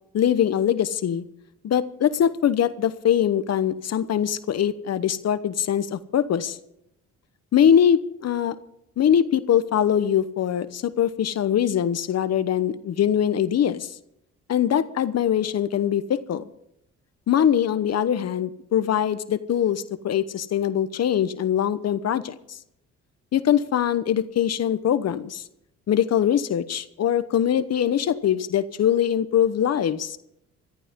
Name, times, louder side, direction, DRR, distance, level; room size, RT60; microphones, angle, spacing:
voice 1, 0.1-1.2 1.6-6.6 7.5-8.5 9.0-14.0 14.5-16.4 17.3-22.6 23.3-25.4 25.9-30.2, left 9 dB, 60° left, 13 dB, 1.0 m, -22 dB
20.5 x 14.0 x 3.7 m, 0.78 s
cardioid pair, 90°, 30 cm